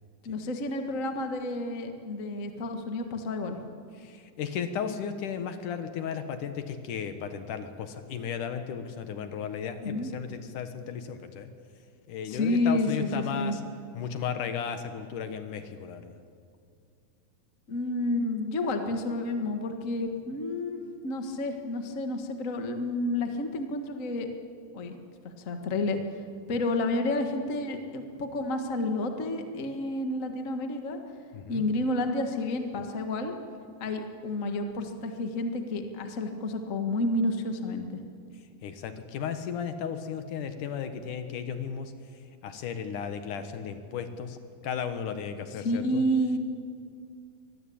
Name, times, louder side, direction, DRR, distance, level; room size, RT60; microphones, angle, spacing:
voice 1, 0.2-3.6 9.8-10.1 12.3-13.6 17.7-24.3 24.7-24.9 25.4-26.0 26.5-31.0 31.5-33.3 33.8-38.0 45.6-46.4, left 2 dB, 35° left, 5 dB, 1.3 m, -30 dB
voice 2, 4.0-11.5 12.1-13.6 13.9-16.2 31.3-31.6 38.6-41.9 42.4-44.4 44.6-46.0, left 7 dB, 70° left, 9 dB, 2.7 m, -35 dB
24.5 x 19.0 x 8.7 m, 2.2 s
omnidirectional pair, 4.0 m